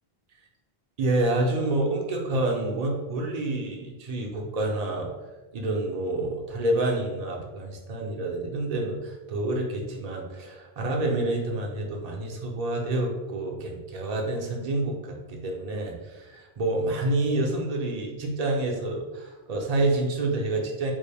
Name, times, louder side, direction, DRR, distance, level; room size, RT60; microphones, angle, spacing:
voice 1, 1.0-5.1 5.5-20.9, right 2 dB, 45° right, 0 dB, 0.6 m, -28 dB
3.5 x 2.4 x 3.3 m, 1.2 s
omnidirectional pair, 1.1 m